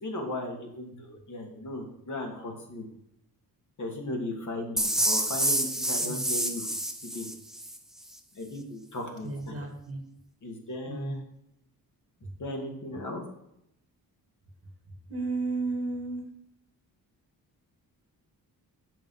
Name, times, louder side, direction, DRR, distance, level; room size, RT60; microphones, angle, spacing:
voice 1, 0.0-2.8 3.8-6.7 7.1-7.3 8.3-9.6 10.4-11.2 12.4-13.2, left 1 dB, 50° left, 1 dB, 2.4 m, -36 dB
sound 1, 4.8-7.8, right 1 dB, ahead, 0.7 m, -28 dB
voice 2, 9.2-10.0 10.9-11.2 15.1-16.2, right 3 dB, 40° right, 4 dB, 1.7 m, -33 dB
7.5 x 6.8 x 5.6 m, 0.78 s
wide cardioid pair, 125°, 37 cm